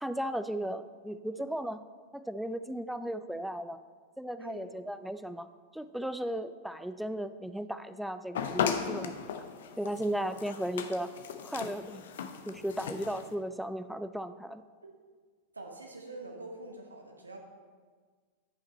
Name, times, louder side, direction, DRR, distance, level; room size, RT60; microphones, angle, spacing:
voice 1, 0.0-1.8 2.1-3.8 4.2-5.5 5.7-9.1 9.8-11.1 11.4-12.0 12.5-14.6, right 1 dB, ahead, 12 dB, 0.3 m, -35 dB
voice 2, 4.4-4.7 14.8-14.9 15.5-17.4, right 2 dB, 80° right, 3 dB, 1.1 m, -45 dB
sound 1, 8.3-13.3, left 7 dB, 60° left, 0.6 m, -36 dB
10.5 x 5.9 x 4.3 m, 1.5 s
figure-of-eight pair, 90°, 0 cm